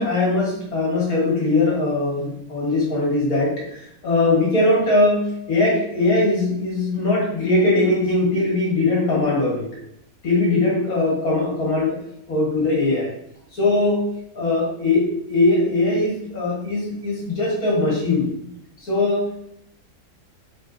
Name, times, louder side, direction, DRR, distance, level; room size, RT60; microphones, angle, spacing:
voice 1, 0.0-9.7 10.2-12.0 12.3-13.1 13.5-14.0 14.3-18.3 18.8-19.5, left 2 dB, 70° left, -5 dB, 2.0 m, -20 dB
4.1 x 3.6 x 2.5 m, 0.74 s
omnidirectional pair, 1.6 m